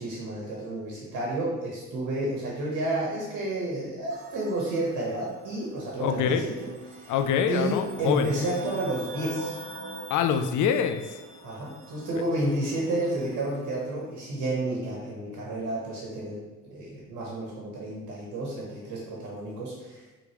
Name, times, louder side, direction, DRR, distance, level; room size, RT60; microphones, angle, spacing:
voice 1, 0.0-7.1 7.5-9.6 11.4-16.4 16.7-20.0, right 1 dB, 90° right, -3 dB, 1.3 m, -31 dB
sound 1, 4.1-13.8, right 3 dB, 50° right, 0.9 m, -43 dB
voice 2, 6.0-6.5 7.1-8.3 10.1-11.0 12.2-12.3, left 8 dB, 80° left, 7 dB, 0.5 m, -25 dB
4.7 x 3.6 x 3.0 m, 1.1 s
cardioid pair, 90°, 30 cm